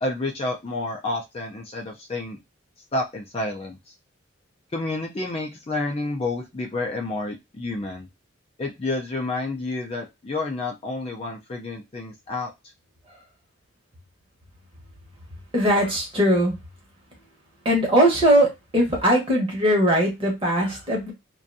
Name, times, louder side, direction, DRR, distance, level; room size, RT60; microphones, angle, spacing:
voice 1, 0.0-2.4 2.9-3.9 4.7-8.1 8.6-12.5, left 2 dB, 30° left, 0 dB, 0.4 m, -29 dB
voice 2, 15.5-16.5 17.6-18.5 18.7-21.1, equal, 25° right, 0 dB, 0.9 m, -20 dB
2.5 x 2.3 x 2.5 m, 0.22 s
head